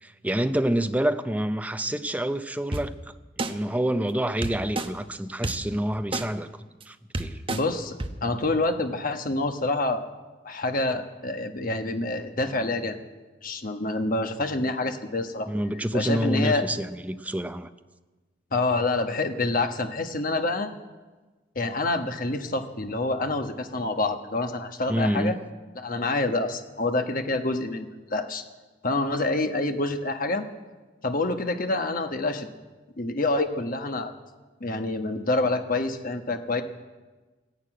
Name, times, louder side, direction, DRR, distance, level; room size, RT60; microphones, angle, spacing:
voice 1, 0.0-2.9 3.4-6.5 6.9-7.4 15.5-17.7 24.9-25.4, right 1 dB, 10° right, 9 dB, 0.6 m, -27 dB
sound 1, 2.7-2.8 3.4-3.5 4.4-4.9 5.4-5.5 6.1-6.2 6.8-6.9 7.1-7.6 8.0-8.1, right 2 dB, 30° right, 0.8 m, -28 dB
voice 2, 7.5-10.1 10.4-13.0 13.4-15.5 15.9-16.6 18.5-20.7 21.5-25.3 25.8-28.4 28.8-30.4 31.0-32.5 33.0-34.1 34.6-36.6, left 2 dB, 45° left, 6 dB, 1.2 m, -27 dB
14.5 x 11.0 x 8.9 m, 1.3 s
head